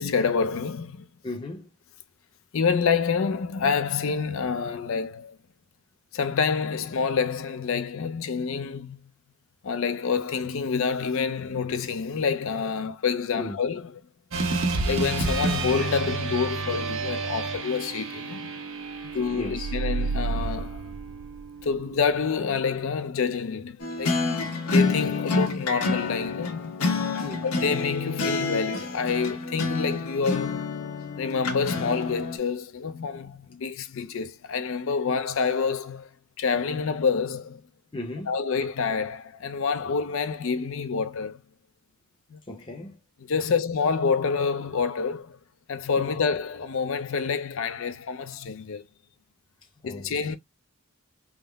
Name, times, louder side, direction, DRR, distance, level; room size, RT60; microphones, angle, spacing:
voice 1, 0.0-1.1 2.5-5.4 6.1-9.0 9.6-14.0 14.8-18.5 19.1-20.9 21.6-24.2 24.7-27.0 27.4-30.7 31.2-36.1 36.4-37.6 38.3-41.4 42.3-42.4 43.2-45.4 45.7-48.8 49.8-50.4, left 5 dB, 65° left, 0.4 m, -27 dB
voice 2, 1.2-1.7 13.4-13.6 19.0-19.7 27.2-27.5 37.9-38.3 42.5-43.0 46.0-46.1 49.8-50.1, left 2 dB, 20° left, 0.6 m, -36 dB
sound 1, 14.3-22.7, right 3 dB, 65° right, 0.9 m, -31 dB
sound 2, 19.2-21.8, right 4 dB, 85° right, 0.3 m, -31 dB
sound 3, 23.8-32.4, left 3 dB, 80° left, 0.9 m, -28 dB
3.6 x 2.0 x 3.3 m
head